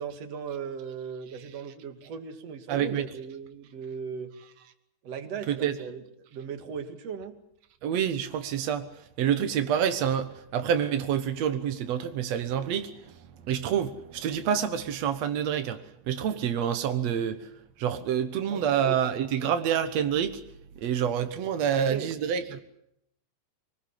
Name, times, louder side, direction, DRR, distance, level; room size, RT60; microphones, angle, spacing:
voice 1, 0.0-4.3 5.0-6.0 6.3-7.4 18.5-19.0 21.7-22.1, right 6 dB, 50° right, 2.1 m, -37 dB
voice 2, 2.7-3.1 5.5-5.8 7.8-8.9 9.2-13.1 13.4-15.8 16.1-17.5 17.8-20.4 20.8-22.6, right 8 dB, 85° right, 1.4 m, -27 dB
25.0 x 20.0 x 8.4 m
omnidirectional pair, 5.0 m